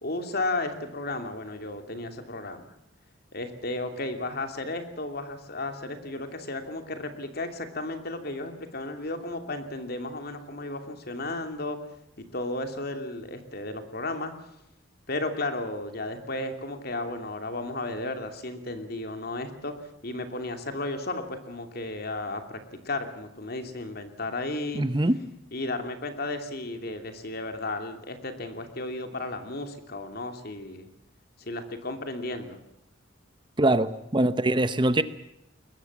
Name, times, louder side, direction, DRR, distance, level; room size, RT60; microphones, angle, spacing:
voice 1, 0.0-2.7 3.3-11.8 12.3-14.3 15.1-19.7 20.0-22.6 22.8-24.8 25.5-30.9 31.4-32.6, left 2 dB, 55° left, 7 dB, 2.8 m, -34 dB
voice 2, 24.7-25.2 33.6-35.0, right 1 dB, 25° right, 12 dB, 0.9 m, -23 dB
22.0 x 21.0 x 7.4 m, 0.82 s
head